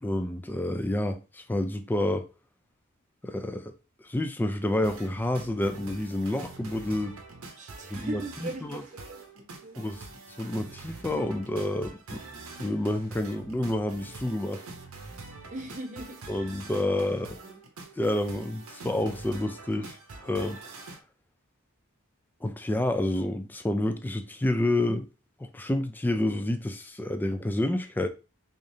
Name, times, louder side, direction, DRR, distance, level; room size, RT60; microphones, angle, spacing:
voice 1, 0.0-2.3 3.2-3.7 4.0-7.2 7.9-8.2 9.8-10.1 10.4-12.3 12.6-14.6 16.3-17.3 18.0-20.0 20.2-20.8 22.4-25.1 25.4-28.1, left 1 dB, 10° left, 0.3 m, -29 dB
sound 1, 4.8-21.0, right 3 dB, 80° right, 0.8 m, -45 dB
voice 2, 7.6-9.9 15.5-16.2 16.8-17.6, right 1 dB, 35° right, 0.8 m, -40 dB
3.7 x 3.4 x 2.7 m
head